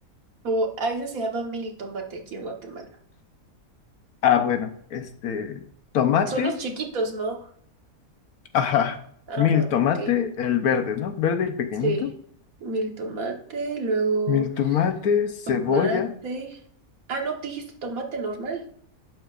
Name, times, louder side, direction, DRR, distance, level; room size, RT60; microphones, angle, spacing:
voice 1, 0.4-2.9 6.3-7.5 9.3-10.1 11.8-12.0 12.6-14.5 15.5-16.6 17.1-18.6, right 3 dB, 70° right, 2 dB, 1.7 m, -29 dB
voice 2, 4.2-5.6 5.9-6.5 8.5-9.0 9.4-12.1 14.3-16.1, left 8 dB, 90° left, 8 dB, 1.4 m, -23 dB
11.0 x 8.1 x 2.5 m, 0.62 s
omnidirectional pair, 1.5 m